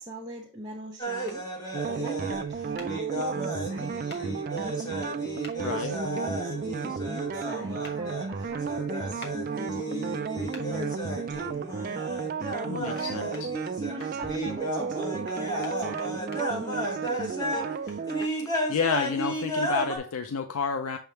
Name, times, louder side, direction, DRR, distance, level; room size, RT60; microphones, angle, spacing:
voice 1, 0.0-1.4 2.0-5.2 5.7-12.0 12.9-13.2 13.8-17.8, right 1 dB, 20° right, -4 dB, 0.8 m, -41 dB
sound 1, 1.0-17.7 18.1-20.0, right 1 dB, 15° left, 1.3 m, -34 dB
sound 2, 1.3-1.4 2.8-2.9 4.1-4.2 5.4-5.6 7.8-8.0 9.2-9.4 10.5-10.7 12.9-13.1 13.3-14.1 15.3-16.4 17.5-18.7, left 2 dB, 45° left, 1.0 m, -46 dB
sound 3, 1.7-18.3, right 5 dB, 40° right, 0.3 m, -33 dB
voice 2, 5.6-5.9 12.7-13.3 18.7-21.0, left 5 dB, 75° left, 7 dB, 0.4 m, -30 dB
6.4 x 3.5 x 4.4 m, 0.38 s
head